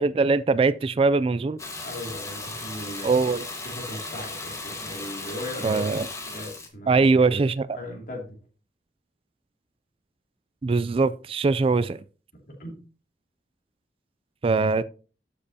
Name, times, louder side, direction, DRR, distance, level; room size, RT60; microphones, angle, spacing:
voice 1, 0.0-1.6 3.0-3.4 5.6-6.1 6.9-7.8 10.6-12.0 14.4-14.8, right 4 dB, 30° right, 0.3 m, -22 dB
Water tap faucet / Bathtub (filling or washing), 1.6-6.7, left 2 dB, 15° left, 1.5 m, -36 dB
voice 2, 1.8-3.1 3.6-5.9 6.2-7.0 7.7-8.4 12.6-12.8, left 1 dB, 50° left, 2.7 m, -37 dB
12.5 x 6.7 x 2.8 m
head